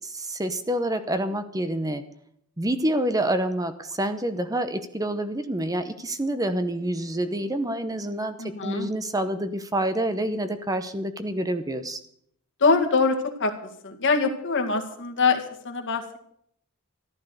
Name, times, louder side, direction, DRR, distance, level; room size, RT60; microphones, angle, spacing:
voice 1, 0.0-2.0 2.6-12.0, right 1 dB, 15° right, 10 dB, 0.8 m, -27 dB
voice 2, 8.4-8.9 12.6-16.0, left 4 dB, 55° left, 4 dB, 2.0 m, -24 dB
14.0 x 12.0 x 6.7 m, 0.68 s
head